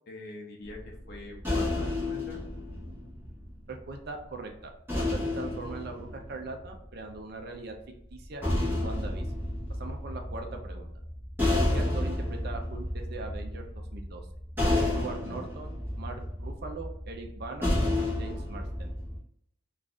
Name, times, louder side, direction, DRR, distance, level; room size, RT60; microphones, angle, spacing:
voice 1, 0.1-2.4, left 2 dB, 50° left, 0 dB, 0.7 m, -43 dB
sound 1, 0.6-3.9 4.9-7.1 8.1-19.2, left 1 dB, 10° right, 1.1 m, -31 dB
voice 2, 3.7-7.8 8.1-9.3 9.8-10.9 11.7-14.2 14.9-18.9, right 3 dB, 50° right, 3 dB, 0.6 m, -41 dB
3.9 x 2.5 x 2.4 m, 0.75 s
head